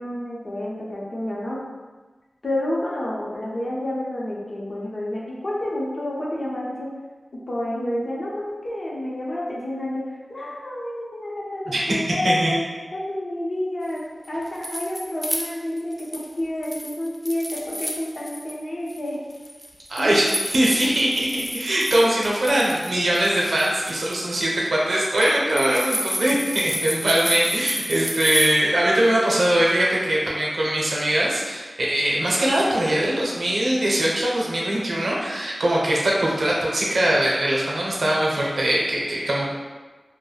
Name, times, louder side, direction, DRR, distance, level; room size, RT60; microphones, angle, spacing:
voice 1, 0.0-1.6 2.4-6.9 7.5-12.6 12.9-14.0 14.3-19.2 20.0-20.2, left 1 dB, 60° left, -5 dB, 0.7 m, -29 dB
voice 2, 11.7-12.6 19.9-39.5, right 1 dB, 85° right, -4 dB, 0.6 m, -22 dB
sound 1, 14.2-16.3 16.6-18.6 18.9-28.5, equal, ahead, 0.4 m, -31 dB
2.3 x 2.1 x 3.2 m, 1.3 s
wide cardioid pair, 60°, 0 cm